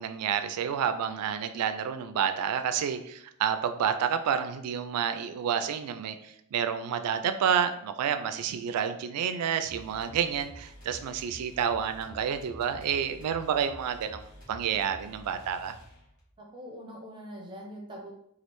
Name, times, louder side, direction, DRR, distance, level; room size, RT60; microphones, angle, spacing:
voice 1, 0.0-15.7, right 8 dB, 85° right, 10 dB, 0.3 m, -29 dB
sound 1, 9.6-16.3, equal, 70° left, 1.1 m, -49 dB
voice 2, 16.4-18.1, equal, 20° right, 0 dB, 0.5 m, -43 dB
3.1 x 2.4 x 3.0 m, 0.75 s
head